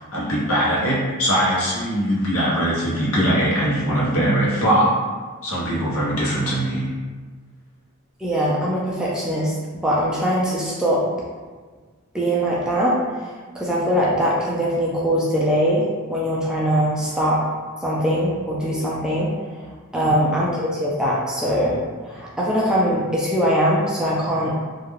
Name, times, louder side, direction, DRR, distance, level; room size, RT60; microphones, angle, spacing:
voice 1, 0.1-4.9 5.4-6.9 19.9-20.1, equal, 75° left, -6 dB, 0.8 m, -21 dB
voice 2, 8.2-9.5 9.8-11.0 12.1-13.0 13.5-17.4 17.8-19.3 19.9-21.8 22.0-24.5, equal, 5° right, -6 dB, 0.3 m, -21 dB
2.4 x 2.1 x 3.1 m, 1.4 s
head